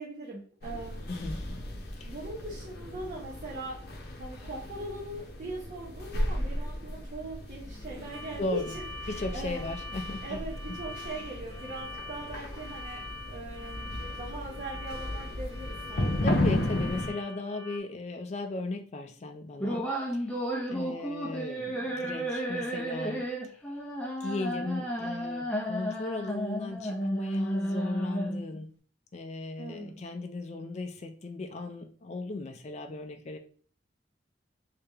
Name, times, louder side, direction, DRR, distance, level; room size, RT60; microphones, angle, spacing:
voice 1, 0.0-1.0 2.1-3.8 4.2-9.7 10.2-16.3 16.7-16.8 29.6-30.0, right 1 dB, 45° right, -3 dB, 0.8 m, -40 dB
sound 1, 0.6-17.1, left 1 dB, 60° left, 0.7 m, -35 dB
voice 2, 1.1-1.4 2.0-2.1 8.4-8.7 9.1-10.4 16.2-20.4 20.7-23.2 24.2-28.7 29.1-33.4, left 2 dB, 40° left, 5 dB, 0.4 m, -36 dB
sound 2, 8.1-17.8, left 2 dB, 85° right, 0.7 m, -44 dB
sound 3, 19.6-28.6, equal, 5° left, 0.7 m, -32 dB
3.3 x 2.8 x 3.4 m, 0.43 s
head